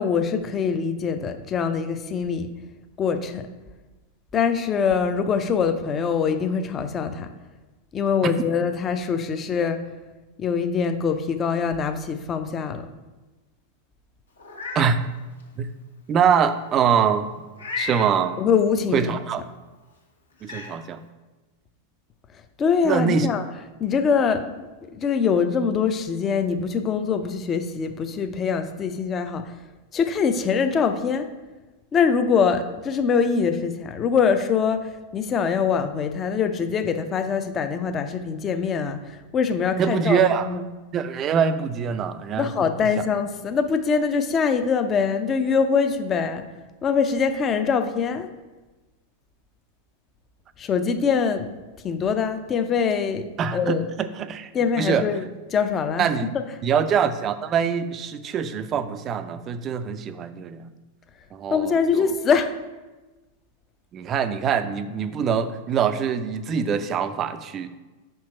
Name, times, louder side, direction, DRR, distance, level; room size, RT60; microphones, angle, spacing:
voice 1, 0.0-2.5 3.0-3.5 4.3-7.3 7.9-9.8 10.4-12.8 18.4-19.1 22.6-23.4 23.8-24.7 25.0-29.4 29.9-31.3 31.9-40.6 42.4-46.4 46.8-48.3 50.6-51.5 51.8-53.8 54.5-55.3 55.5-56.1 61.5-62.5, left 6 dB, 25° left, 9 dB, 0.5 m, -23 dB
Meow, 14.4-14.9 15.4-15.5 17.5-18.2 19.7-19.8 20.4-20.7, left 4 dB, 70° left, 1.2 m, -32 dB
voice 2, 16.1-17.3 17.8-18.4 18.9-19.4 20.4-21.0 22.8-23.3 39.8-40.6 40.9-42.9 53.4-54.5 54.8-55.1 56.0-56.3 56.6-60.7 61.3-62.1 63.9-67.7, right 7 dB, 30° right, 12 dB, 0.4 m, -24 dB
5.7 x 4.5 x 4.3 m, 1.2 s
figure-of-eight pair, 90°, 0 cm